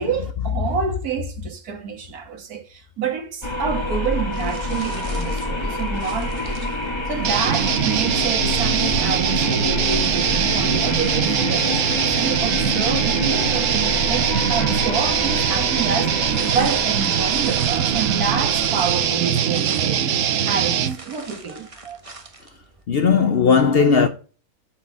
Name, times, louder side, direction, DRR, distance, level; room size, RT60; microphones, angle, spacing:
voice 1, 0.0-6.7 7.1-22.0, right 6 dB, 85° right, 2.0 m, -28 dB
sound 1, 3.4-19.3, left 2 dB, 20° left, 1.4 m, -27 dB
sound 2, 4.3-12.9 15.5-22.8, right 3 dB, 25° right, 1.1 m, -44 dB
sound 3, 7.2-21.0, right 9 dB, 65° right, 1.1 m, -22 dB
voice 2, 22.9-24.1, left 5 dB, 55° left, 0.7 m, -16 dB
8.9 x 4.6 x 7.4 m
omnidirectional pair, 1.5 m